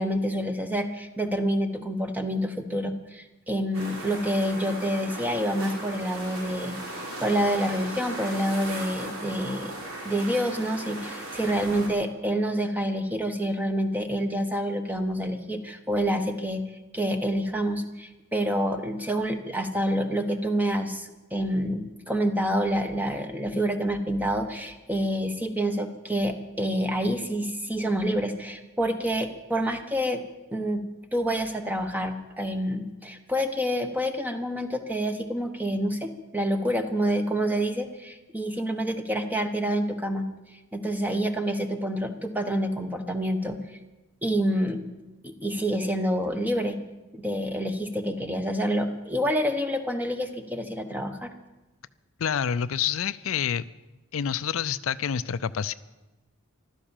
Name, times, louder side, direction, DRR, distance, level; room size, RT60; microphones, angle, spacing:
voice 1, 0.0-6.7 7.2-9.7 10.0-16.6 16.9-30.2 30.5-30.9 31.1-40.3 40.7-43.6 44.2-44.8 45.2-46.8 47.1-51.3, equal, 10° right, 7 dB, 1.1 m, -27 dB
sound 1, 3.7-11.9, right 1 dB, 75° right, 3.6 m, -37 dB
voice 2, 52.2-53.6 54.1-55.7, left 8 dB, 65° left, 14 dB, 0.4 m, -27 dB
15.0 x 12.5 x 7.3 m, 1.1 s
head